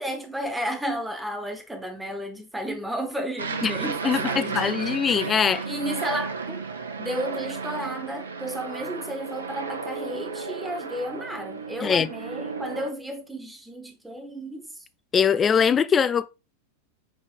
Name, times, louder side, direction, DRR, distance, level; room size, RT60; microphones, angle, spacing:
voice 1, 0.0-6.6 7.0-14.8 15.3-15.4, equal, 5° right, 0.9 m, -33 dB
Aircraft, 3.4-12.9, right 4 dB, 70° right, 0.5 m, -33 dB
voice 2, 4.0-5.6 11.8-12.1 15.1-16.3, left 7 dB, 20° left, 0.3 m, -22 dB
5.8 x 2.5 x 3.7 m
figure-of-eight pair, 90°, 0 cm